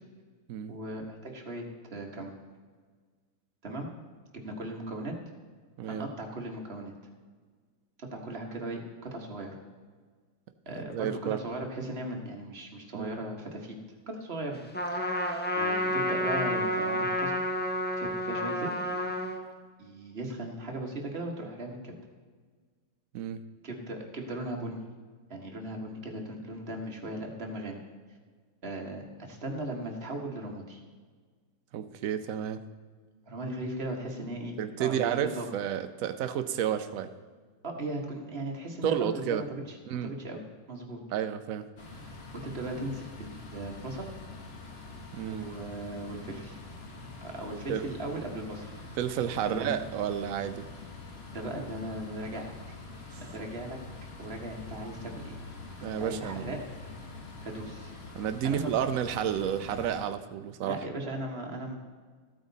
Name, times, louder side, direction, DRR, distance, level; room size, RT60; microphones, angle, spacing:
voice 1, 0.7-2.4 3.6-3.9 4.3-5.1 5.8-6.9 8.0-9.6 10.6-13.7 14.1-14.6 14.9-15.3 15.6-17.4 18.0-18.7 19.8-21.9 23.6-24.8 25.3-27.8 28.6-30.8 33.3-35.5 37.6-39.8 40.0-40.4 40.7-41.0 42.3-44.1 45.3-46.6 47.2-48.8 49.5-49.8 51.3-52.5 53.2-53.8 54.2-55.3 55.8-56.6 57.4-57.9 58.4-58.8 60.6-61.8, right 1 dB, 35° right, 1 dB, 1.6 m, -37 dB
voice 2, 10.8-11.4 12.9-13.1 23.1-23.4 31.7-32.6 34.6-37.1 38.8-39.4 39.9-40.1 41.1-41.7 45.1-45.5 47.7-47.8 49.0-50.7 53.1-53.2 55.8-56.6 58.1-60.8, right 9 dB, 60° right, 9 dB, 1.0 m, -31 dB
Trumpet, 14.7-19.4, left 1 dB, 10° left, 0.6 m, -30 dB
sound 1, 41.8-60.0, left 3 dB, 40° left, 1.5 m, -45 dB
14.5 x 8.8 x 4.1 m, 1.5 s
omnidirectional pair, 1.9 m